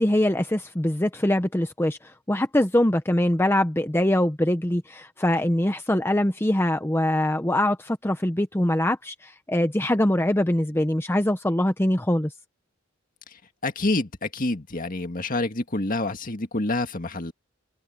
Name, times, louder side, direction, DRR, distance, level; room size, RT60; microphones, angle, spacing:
voice 1, 0.0-12.3, left 1 dB, 10° left, 0.8 m, -23 dB
voice 2, 13.3-17.3, left 2 dB, 40° left, 2.0 m, -28 dB
head